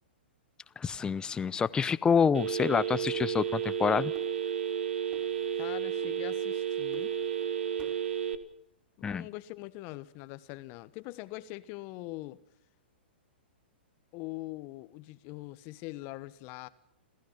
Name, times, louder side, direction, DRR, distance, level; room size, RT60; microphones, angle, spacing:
voice 1, 0.8-4.1 9.0-9.3, left 6 dB, 15° left, 0.7 m, -27 dB
sound 1, 0.9-2.8 3.1-3.9 4.1-4.8 5.1-5.7 6.0-7.5 7.8-8.1, right 4 dB, 20° right, 4.9 m, -55 dB
Telephone, 2.3-8.4, right 8 dB, 75° right, 1.7 m, -32 dB
voice 2, 5.5-7.1 9.0-12.4 14.1-16.7, left 19 dB, 40° left, 1.3 m, -42 dB
29.5 x 16.0 x 5.9 m
figure-of-eight pair, 115°, 6 cm